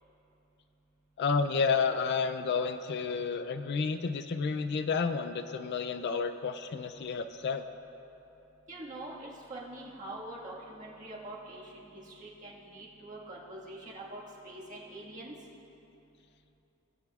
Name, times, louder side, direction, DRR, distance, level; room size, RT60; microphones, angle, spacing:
voice 1, 1.2-7.7, left 5 dB, 55° left, 9 dB, 0.4 m, -30 dB
voice 2, 8.7-15.3, right 1 dB, 35° right, -5 dB, 1.6 m, -44 dB
18.0 x 8.0 x 2.3 m, 3.0 s
head